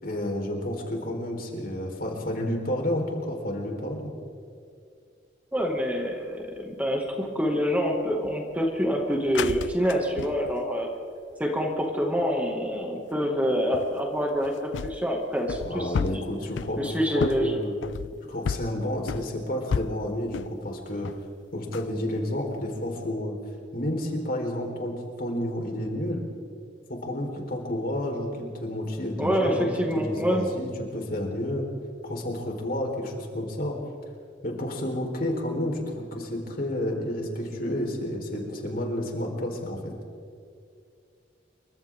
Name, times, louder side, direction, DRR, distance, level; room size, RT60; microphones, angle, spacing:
voice 1, 0.0-4.1 15.6-17.8 18.3-21.1 21.5-23.4 23.7-26.3 26.9-31.7 32.0-33.8 34.4-39.9, left 1 dB, 50° left, 1 dB, 4.3 m, -30 dB
voice 2, 5.5-10.9 11.4-16.2 16.8-17.6 29.2-30.4, equal, 10° right, 0 dB, 2.2 m, -26 dB
sound 1, 5.6-6.1 6.5-6.6 7.1-7.5 8.1-10.8 11.3-11.8 12.1-12.5 13.4-13.5 13.7-20.6 21.0-21.3 21.7-21.9 22.8-23.0, left 6 dB, 80° left, 0.4 m, -33 dB
28.0 x 24.5 x 3.8 m, 2.3 s
head